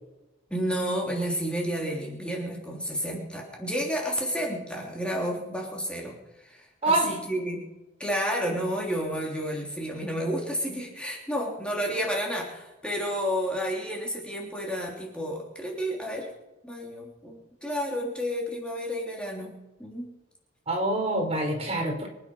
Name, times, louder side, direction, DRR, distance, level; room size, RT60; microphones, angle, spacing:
voice 1, 0.5-7.6 8.0-16.3 16.6-20.1, equal, 5° left, -2 dB, 3.4 m, -31 dB
voice 2, 6.8-7.1 20.7-22.1, right 2 dB, 35° right, 2 dB, 4.2 m, -26 dB
25.5 x 9.9 x 5.7 m, 1.0 s
head